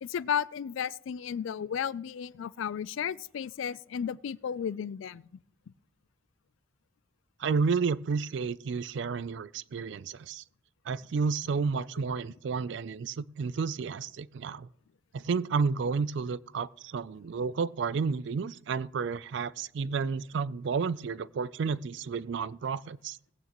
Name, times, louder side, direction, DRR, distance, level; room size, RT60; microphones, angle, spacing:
voice 1, 0.0-5.4, left 8 dB, 70° left, 0.3 m, -34 dB
voice 2, 7.4-10.4 10.9-14.7 15.1-23.2, right 5 dB, 60° right, 0.3 m, -31 dB
18.0 x 8.8 x 3.0 m
head